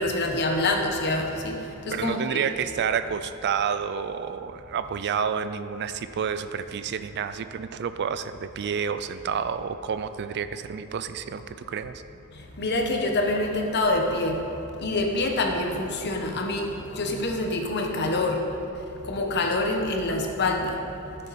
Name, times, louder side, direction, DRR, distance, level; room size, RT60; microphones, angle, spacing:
voice 1, 0.0-1.6 1.9-2.4 12.6-14.5 14.8-18.4 19.1-20.7, left 2 dB, 50° left, 3 dB, 1.0 m, -26 dB
voice 2, 1.9-12.0, right 7 dB, 50° right, 12 dB, 0.4 m, -29 dB
13.0 x 6.7 x 4.2 m, 2.9 s
head